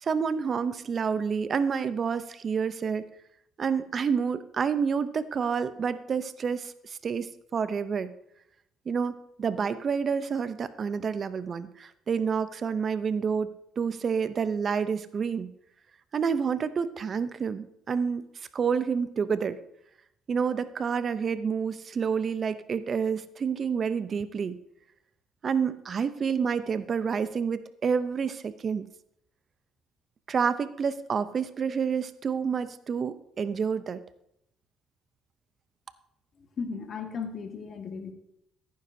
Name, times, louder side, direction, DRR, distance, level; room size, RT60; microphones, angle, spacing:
voice 1, 0.0-3.1 3.6-8.1 8.9-15.5 16.1-18.3 18.5-19.6 20.3-24.6 25.4-28.8 30.3-34.0, right 6 dB, 45° right, 14 dB, 0.6 m, -29 dB
voice 2, 36.6-38.1, left 5 dB, 50° left, 5 dB, 1.5 m, -35 dB
15.0 x 9.4 x 2.7 m, 0.78 s
supercardioid pair, 85°, 0 cm